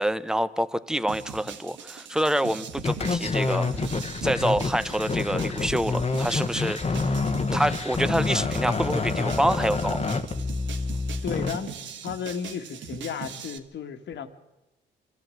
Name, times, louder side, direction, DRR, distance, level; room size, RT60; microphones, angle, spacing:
voice 1, 0.0-3.9 4.2-7.1 7.5-10.0, right 1 dB, 5° right, 14 dB, 0.9 m, -27 dB
sound 1, 1.1-13.6, right 7 dB, 70° right, 1.6 m, -41 dB
sound 2, 2.8-11.6, left 3 dB, 30° left, 1.4 m, -27 dB
voice 2, 11.2-11.7 12.0-14.3, left 7 dB, 65° left, 8 dB, 1.8 m, -33 dB
24.0 x 14.5 x 7.8 m, 1.0 s
cardioid pair, 90°, 20 cm